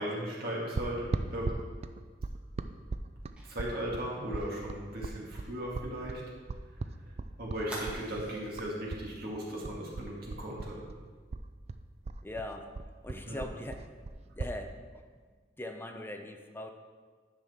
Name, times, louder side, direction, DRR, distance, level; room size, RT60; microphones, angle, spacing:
voice 1, 0.0-1.5 3.4-6.2 7.4-10.8 13.2-13.4, equal, 60° right, -4 dB, 2.1 m, -37 dB
sound 1, 0.8-9.1 9.3-11.0 11.3-14.6, right 3 dB, 35° right, 0.3 m, -38 dB
Fire, 3.4-6.8 7.1-7.2 7.7-8.6 9.1-9.2 9.5-9.8, right 1 dB, 5° right, 1.8 m, -48 dB
voice 2, 12.2-12.7 13.0-13.8 14.4-14.7 15.6-16.7, left 1 dB, 10° left, 5 dB, 0.5 m, -40 dB
10.5 x 5.9 x 3.6 m, 1.5 s
head